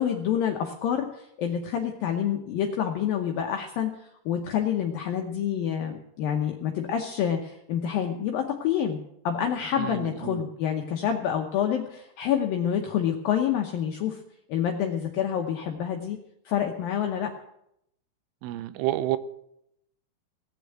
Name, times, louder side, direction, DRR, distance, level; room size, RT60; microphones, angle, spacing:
voice 1, 0.0-9.0 9.2-14.2 14.5-16.2 16.5-17.3, left 9 dB, 80° left, 3 dB, 2.0 m, -27 dB
voice 2, 9.8-10.4 18.4-19.2, right 14 dB, 85° right, 13 dB, 3.2 m, -29 dB
18.5 x 7.0 x 9.1 m, 0.78 s
omnidirectional pair, 5.6 m